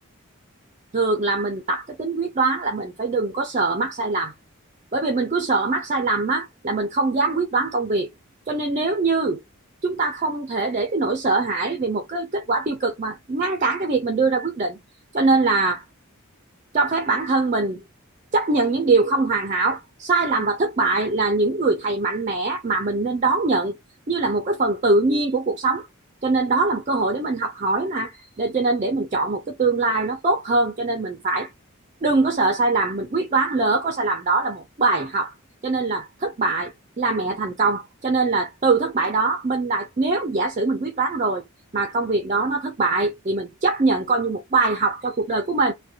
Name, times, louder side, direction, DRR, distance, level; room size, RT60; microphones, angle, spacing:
voice 1, 0.9-4.3 4.9-8.1 8.5-9.4 9.8-14.8 15.1-15.8 16.7-17.8 18.3-23.7 24.1-25.9 26.2-31.5 32.0-35.3 35.6-41.4 41.7-45.7, right 3 dB, 35° right, 0.4 m, -22 dB
2.4 x 2.1 x 2.7 m
head